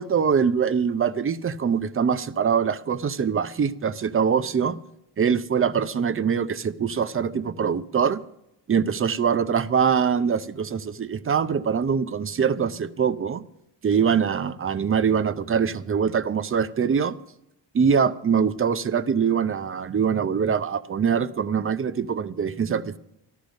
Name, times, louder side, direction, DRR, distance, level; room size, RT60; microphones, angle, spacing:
voice 1, 0.0-4.8 5.2-8.2 8.7-13.4 13.8-17.2 17.7-23.0, right 7 dB, 30° right, 0.7 m, -23 dB
13.5 x 12.0 x 5.2 m
cardioid pair, 100°, 42 cm